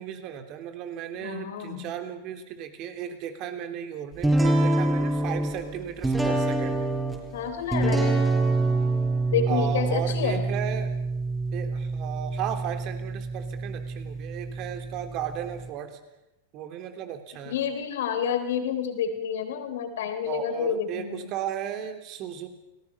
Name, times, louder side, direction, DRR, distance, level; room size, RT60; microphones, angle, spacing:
voice 1, 0.0-6.8 9.5-10.9 11.5-16.0 16.5-17.6 20.2-22.5, right 9 dB, 40° right, 7 dB, 3.2 m, -35 dB
voice 2, 1.2-1.9 7.3-8.3 9.3-10.4 17.5-21.3, left 7 dB, 60° left, 7 dB, 3.7 m, -29 dB
sound 1, 4.2-15.7, right 2 dB, 10° right, 5.5 m, -26 dB
29.5 x 19.5 x 5.6 m, 0.91 s
figure-of-eight pair, 95°, 0 cm